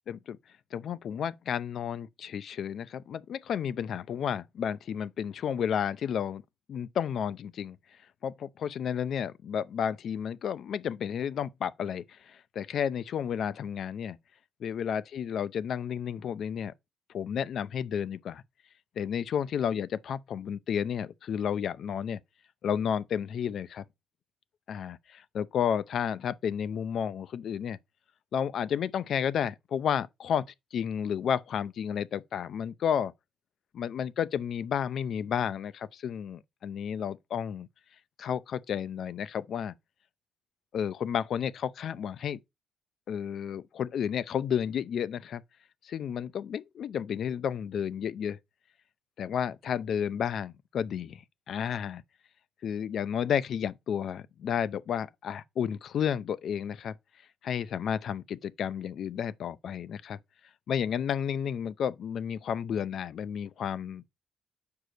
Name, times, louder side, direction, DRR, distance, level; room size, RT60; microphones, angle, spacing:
voice 1, 0.1-0.4 0.7-6.4 6.7-7.8 8.2-14.2 14.6-16.7 17.1-18.4 19.0-22.2 22.6-23.8 24.7-27.8 28.3-30.5 30.7-33.1 33.7-37.7 38.2-39.7 40.7-42.4 43.1-45.4 45.8-48.4 49.2-52.0 52.6-56.9 57.4-60.2 60.7-64.1, left 8 dB, 65° left, 0.6 m, -32 dB
6.4 x 4.8 x 5.1 m
cardioid pair, 90°, 0 cm